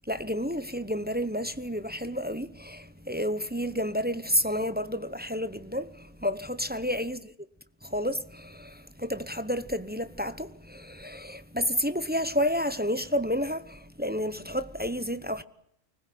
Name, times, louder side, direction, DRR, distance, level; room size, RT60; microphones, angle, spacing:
voice 1, 0.1-7.2 7.8-15.4, equal, 10° right, 0.8 m, -30 dB
25.0 x 20.0 x 9.2 m
omnidirectional pair, 1.4 m